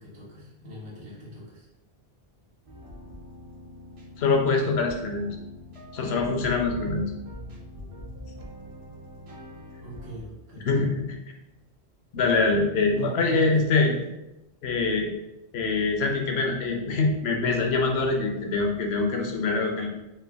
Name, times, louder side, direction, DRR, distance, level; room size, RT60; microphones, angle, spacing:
voice 1, 0.0-1.7 9.8-10.7 12.9-14.1, right 2 dB, 75° right, -5 dB, 1.3 m, -40 dB
sound 1, 2.7-10.2, equal, 40° right, 0.5 m, -43 dB
voice 2, 4.2-5.3 5.9-7.1 10.6-11.1 12.1-13.9 14.6-15.1 15.5-19.9, left 3 dB, 70° left, 2 dB, 0.8 m, -24 dB
3.3 x 2.1 x 3.3 m, 0.92 s
omnidirectional pair, 1.1 m